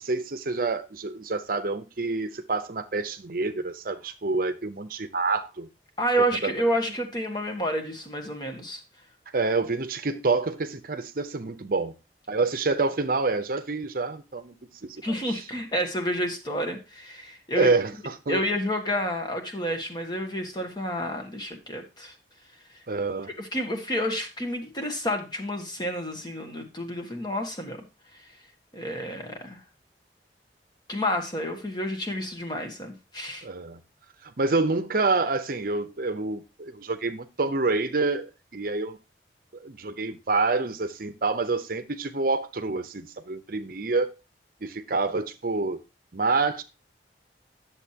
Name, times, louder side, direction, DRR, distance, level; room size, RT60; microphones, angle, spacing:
voice 1, 0.0-5.7 6.4-6.5 9.3-11.9 12.3-14.5 14.8-15.4 17.6-18.4 22.9-23.3 33.4-33.8 34.2-39.0 39.6-44.1 44.6-45.8 46.1-46.6, right 3 dB, 50° right, 0.7 m, -27 dB
voice 2, 6.0-8.8 15.0-17.7 18.3-22.1 23.4-27.8 28.7-29.6 30.9-33.4, equal, 25° left, 1.5 m, -29 dB
10.5 x 7.1 x 2.8 m
head